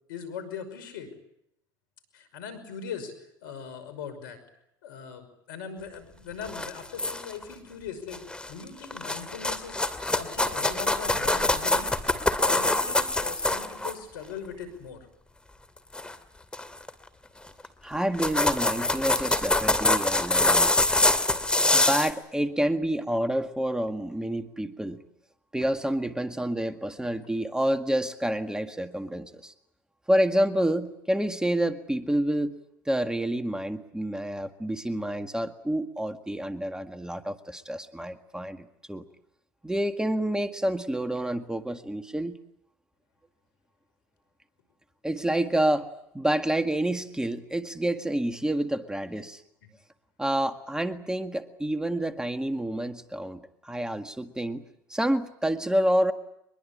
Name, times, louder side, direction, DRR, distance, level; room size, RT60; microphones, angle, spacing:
voice 1, 0.1-1.1 2.1-3.1 3.4-4.4 4.8-11.9 12.4-15.1, left 6 dB, 80° left, 11 dB, 5.6 m, -40 dB
sound 1, 6.4-7.4 8.1-8.5 8.8-13.9 15.9-16.1 16.5-16.9 17.6-17.7 18.0-22.1, left 2 dB, 10° left, 2.5 m, -25 dB
voice 2, 17.8-20.7 21.7-25.0 25.5-29.5 30.1-32.6 32.9-39.0 39.6-42.4 45.0-45.9 46.1-49.4 50.2-54.6 54.9-56.1, right 1 dB, 5° right, 8 dB, 1.8 m, -28 dB
24.0 x 22.0 x 8.7 m, 0.79 s
hypercardioid pair, 80°, 11 cm